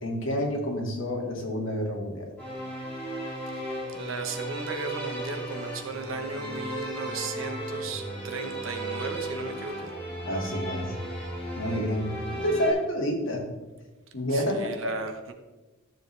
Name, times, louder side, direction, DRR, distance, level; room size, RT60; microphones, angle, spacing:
voice 1, 0.0-2.3 10.2-10.9 11.6-12.1 12.4-13.5 14.1-14.7, equal, 75° left, 0 dB, 2.1 m, -28 dB
sound 1, 2.4-12.7, right 1 dB, 5° left, 3.5 m, -35 dB
voice 2, 3.9-9.9 14.3-15.3, right 3 dB, 80° right, 6 dB, 1.1 m, -36 dB
13.0 x 7.0 x 3.3 m, 1.2 s
head